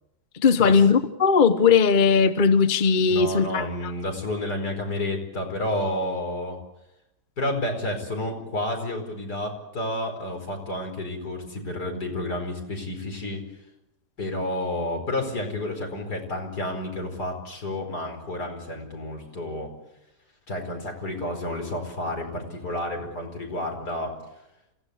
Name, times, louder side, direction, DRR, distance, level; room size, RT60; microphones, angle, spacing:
voice 1, 0.3-3.6, left 5 dB, 35° left, 0.9 m, -18 dB
voice 2, 3.1-6.6 7.4-13.4 14.2-19.7 20.5-24.2, left 1 dB, 75° left, 5.3 m, -30 dB
27.0 x 16.5 x 8.3 m
omnidirectional pair, 1.8 m